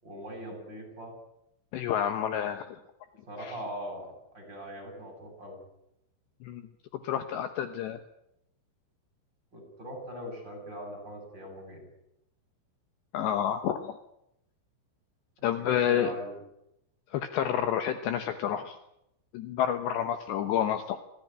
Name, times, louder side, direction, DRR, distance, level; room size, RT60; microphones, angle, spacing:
voice 1, 0.0-1.1 3.3-5.6 9.5-11.9 15.6-16.4, equal, 20° right, 2 dB, 7.6 m, -41 dB
voice 2, 1.7-2.8 3.4-3.5 6.4-6.6 7.0-8.0 13.1-14.0 15.4-16.1 17.1-18.8 19.3-21.0, left 9 dB, 70° left, 8 dB, 3.0 m, -29 dB
26.0 x 16.5 x 9.7 m, 0.83 s
omnidirectional pair, 5.8 m